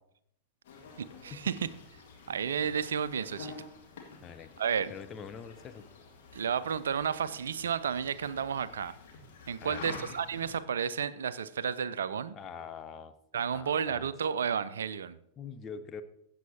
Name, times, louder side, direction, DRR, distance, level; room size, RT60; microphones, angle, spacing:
sound 1, 0.6-10.6, left 4 dB, 55° left, 2.0 m, -49 dB
voice 1, 1.0-1.7 2.3-3.5 4.6-4.9 6.3-8.9 9.5-12.4 13.3-15.2, right 7 dB, 65° right, 16 dB, 0.4 m, -32 dB
voice 2, 4.2-4.5 4.9-5.9 9.6-10.0 12.3-13.1 13.5-14.1 15.4-16.0, left 6 dB, 25° left, 9 dB, 0.7 m, -44 dB
15.5 x 7.6 x 2.8 m, 0.74 s
figure-of-eight pair, 90°, 0 cm